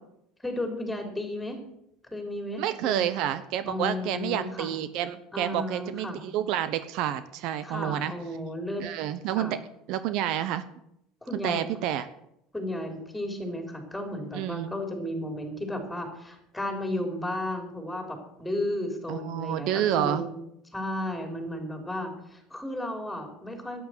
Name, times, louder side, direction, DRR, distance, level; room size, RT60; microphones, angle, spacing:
voice 1, 0.4-1.6 2.1-3.0 3.6-4.7 5.3-6.2 7.6-8.9 9.4-9.6 11.2-11.6 12.5-20.4 20.7-23.8, left 1 dB, 5° left, 5 dB, 3.5 m, -34 dB
voice 2, 2.6-8.1 8.8-9.6 9.9-10.6 11.4-12.1 14.3-14.7 19.1-20.2, right 11 dB, 65° right, 13 dB, 0.9 m, -29 dB
11.0 x 9.5 x 7.9 m, 0.79 s
supercardioid pair, 110°, 0 cm